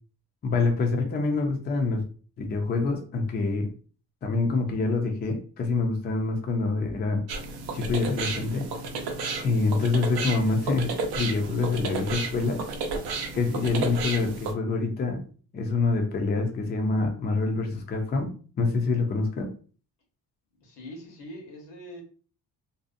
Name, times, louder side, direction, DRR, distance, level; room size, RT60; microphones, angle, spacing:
voice 1, 0.4-2.0 2.4-3.7 4.2-7.2 7.7-8.7 9.4-12.6 13.3-15.3 15.5-18.3 18.6-19.5, left 3 dB, 25° left, 0.4 m, -26 dB
sound 1, 7.3-14.5, right 3 dB, 60° right, 0.6 m, -32 dB
voice 2, 20.6-22.0, equal, 80° left, 1.0 m, -43 dB
2.6 x 2.0 x 2.5 m
cardioid pair, 135°, 42 cm